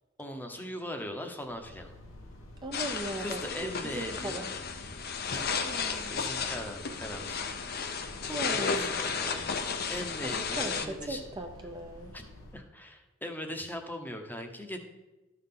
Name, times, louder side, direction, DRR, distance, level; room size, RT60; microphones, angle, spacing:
voice 1, 0.2-1.9 3.2-4.5 5.3-5.5 6.1-7.5 8.2-9.5 9.9-11.2 12.1-12.2 12.5-14.8, equal, 10° left, 4 dB, 0.8 m, -40 dB
sound 1, 1.4-12.6, left 1 dB, 90° left, 1.3 m, -49 dB
voice 2, 2.6-4.5 5.6-6.3 8.3-9.3 10.2-12.1, right 1 dB, 20° right, 3 dB, 0.6 m, -39 dB
sound 2, 2.7-10.9, left 5 dB, 50° left, 0.7 m, -33 dB
13.0 x 5.8 x 3.8 m, 1.1 s
head